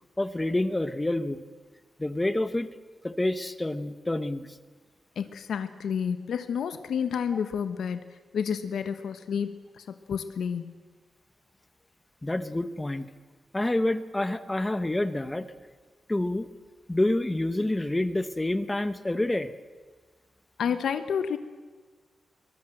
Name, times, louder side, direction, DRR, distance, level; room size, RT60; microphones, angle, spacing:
voice 1, 0.2-1.4 2.0-2.7 3.0-4.6 12.2-13.1 13.5-15.5 16.1-16.5 16.9-19.5, left 1 dB, 10° left, 12 dB, 1.0 m, -28 dB
voice 2, 5.2-8.0 8.3-10.7 20.6-21.4, left 7 dB, 85° left, 10 dB, 1.2 m, -30 dB
23.0 x 21.0 x 7.8 m, 1.4 s
wide cardioid pair, 155°, 0 cm